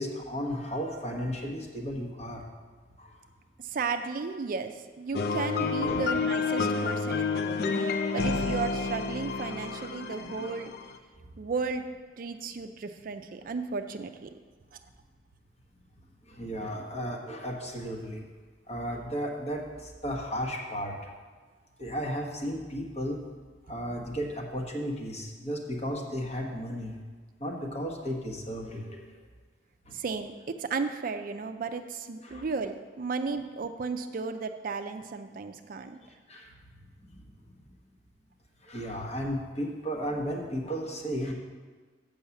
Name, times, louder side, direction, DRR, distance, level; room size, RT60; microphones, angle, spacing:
voice 1, 0.0-2.4 3.0-3.2 5.8-6.0 16.2-18.3 18.7-21.1 21.8-23.2 23.7-27.0 27.4-29.2 29.8-30.0 32.2-32.5 36.3-36.5 37.1-37.2 38.6-41.3, equal, 35° left, 0 dB, 1.2 m, -34 dB
voice 2, 3.6-10.7 11.4-11.9 12.2-14.3 29.9-36.0, right 4 dB, 50° right, 8 dB, 0.4 m, -34 dB
sound 1, 5.1-11.0, left 4 dB, 60° left, 0.5 m, -29 dB
7.1 x 5.5 x 7.0 m, 1.4 s
head